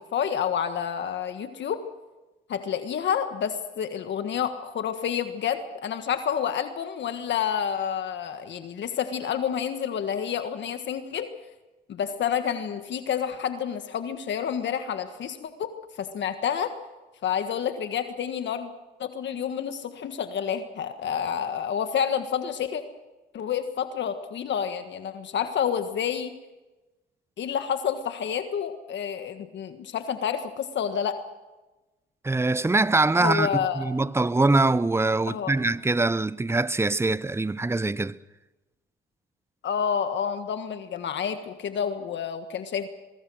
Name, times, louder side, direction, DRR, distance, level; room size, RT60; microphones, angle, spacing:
voice 1, 0.1-1.8 2.5-11.3 11.9-15.7 16.0-16.7 17.2-18.7 19.0-22.8 23.3-26.3 27.4-31.2 33.2-33.9 35.3-35.5 39.6-42.9, left 8 dB, 65° left, 1.6 m, -29 dB
voice 2, 32.2-33.5 33.7-38.2, right 2 dB, 10° right, 0.7 m, -23 dB
23.5 x 22.0 x 6.3 m
cardioid pair, 90°, 20 cm